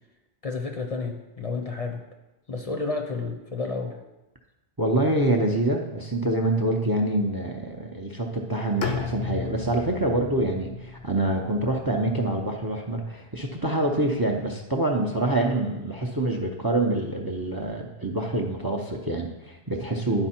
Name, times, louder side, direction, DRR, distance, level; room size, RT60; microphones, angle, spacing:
voice 1, 0.4-2.0 2.5-4.0, left 3 dB, 40° left, 3 dB, 0.7 m, -31 dB
voice 2, 4.8-20.3, right 1 dB, 25° right, 3 dB, 0.6 m, -26 dB
Bowed string instrument, 8.8-12.7, left 6 dB, 80° left, 1.0 m, -35 dB
10.5 x 4.6 x 4.3 m, 1.0 s
omnidirectional pair, 1.0 m